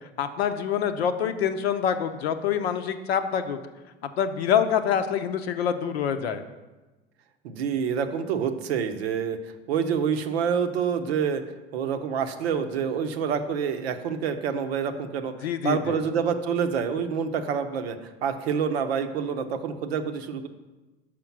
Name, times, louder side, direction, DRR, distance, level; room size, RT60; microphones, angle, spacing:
voice 1, 0.2-3.6 4.2-6.4 15.4-16.0, left 8 dB, 80° left, 9 dB, 0.7 m, -26 dB
voice 2, 7.4-11.4 11.7-20.5, right 7 dB, 80° right, 8 dB, 0.7 m, -27 dB
5.9 x 5.0 x 5.9 m, 1.1 s
hypercardioid pair, 80°, 31 cm